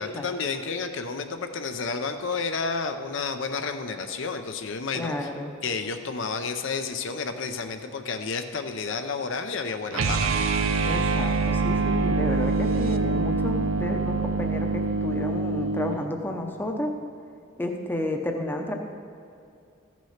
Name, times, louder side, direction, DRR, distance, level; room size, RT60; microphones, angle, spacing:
voice 1, 0.0-5.3 5.6-10.3, left 4 dB, 60° left, 7 dB, 0.6 m, -31 dB
voice 2, 4.9-5.5 10.9-16.9 17.6-18.7, left 1 dB, 10° left, 3 dB, 0.7 m, -31 dB
sound 1, 9.9-16.0, right 3 dB, 75° right, 0.6 m, -25 dB
14.5 x 6.1 x 5.7 m, 2.5 s
head